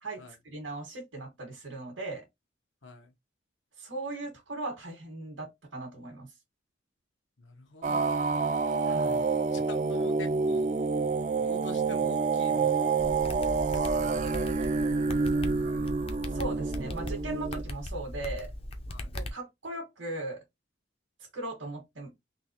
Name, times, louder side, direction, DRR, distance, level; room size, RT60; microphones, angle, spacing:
voice 1, 0.5-2.2 3.8-6.3 8.8-9.3 16.3-18.5 19.1-20.4 21.3-22.1, right 2 dB, 90° right, 1.5 m, -38 dB
voice 2, 2.8-3.1 7.4-8.5 9.5-10.8 11.4-13.2 13.7-15.9 18.9-19.1, left 2 dB, 80° left, 1.1 m, -47 dB
sound 1, 7.8-17.6, right 4 dB, 40° right, 0.3 m, -28 dB
sound 2, 13.0-19.3, left 1 dB, 30° left, 0.5 m, -38 dB
3.8 x 2.9 x 2.9 m
head